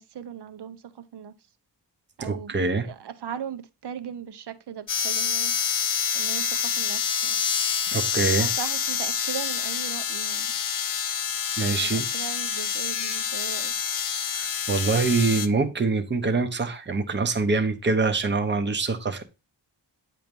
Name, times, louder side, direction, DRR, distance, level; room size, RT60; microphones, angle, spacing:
voice 1, 0.0-1.3 2.2-5.5 6.1-7.4 8.4-10.5 11.7-13.7, right 8 dB, 65° right, 0.8 m, -38 dB
voice 2, 2.2-2.9 7.9-8.5 11.6-12.1 14.4-19.2, right 4 dB, 25° right, 0.8 m, -24 dB
sound 1, 4.9-15.5, left 7 dB, 50° left, 0.6 m, -27 dB
9.2 x 3.1 x 5.2 m
wide cardioid pair, 165°, 44 cm